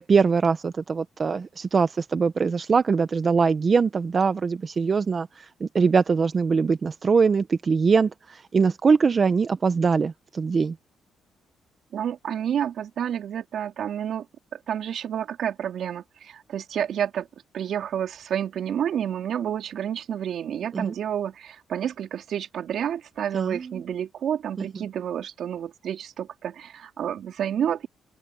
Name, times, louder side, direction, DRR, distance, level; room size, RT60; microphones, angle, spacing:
voice 1, 0.0-10.7 20.7-20.9 23.3-23.8 24.6-24.7, right 5 dB, 40° right, 0.9 m, -22 dB
voice 2, 11.9-14.3 14.5-17.3 17.5-27.9, right 9 dB, 65° right, 3.9 m, -29 dB
open air
cardioid pair, 90°, 0 cm